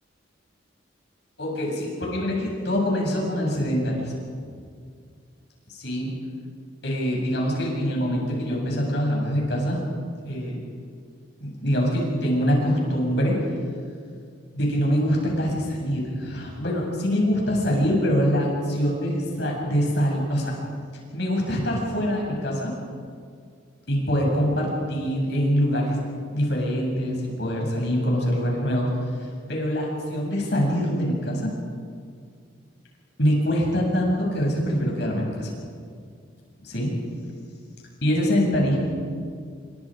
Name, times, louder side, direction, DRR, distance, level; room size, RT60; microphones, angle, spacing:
voice 1, 1.4-4.4 5.7-6.1 6.8-9.8 10.3-10.6 11.4-13.4 14.5-20.5 21.1-22.7 23.9-26.0 26.3-28.9 29.5-31.5 33.2-35.5 36.6-36.9 38.0-38.8, equal, 60° left, -1 dB, 7.6 m, -24 dB
29.5 x 25.0 x 5.2 m, 2.2 s
head